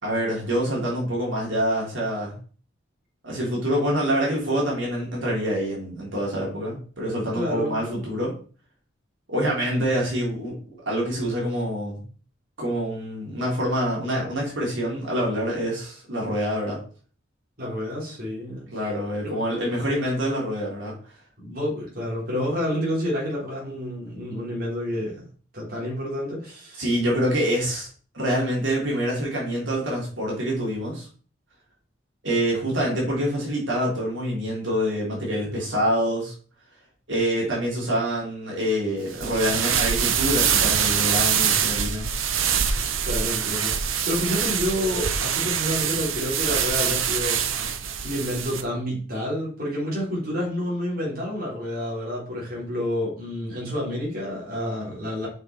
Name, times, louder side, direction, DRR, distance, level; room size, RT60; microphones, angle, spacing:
voice 1, 0.0-2.3 3.2-8.4 9.3-10.6 10.9-12.0 12.6-16.8 18.7-20.9 26.8-27.9 28.1-31.1 32.2-36.3 37.1-42.1, equal, 70° right, -3 dB, 3.5 m, -26 dB
voice 2, 7.3-8.0 17.6-18.9 19.2-19.4 21.4-25.3 25.5-26.8 43.0-47.7 48.0-55.3, left 1 dB, 50° right, -5 dB, 3.5 m, -29 dB
sound 1, 39.1-48.6, right 8 dB, 90° right, 0.8 m, -24 dB
6.4 x 5.5 x 4.5 m, 0.41 s
head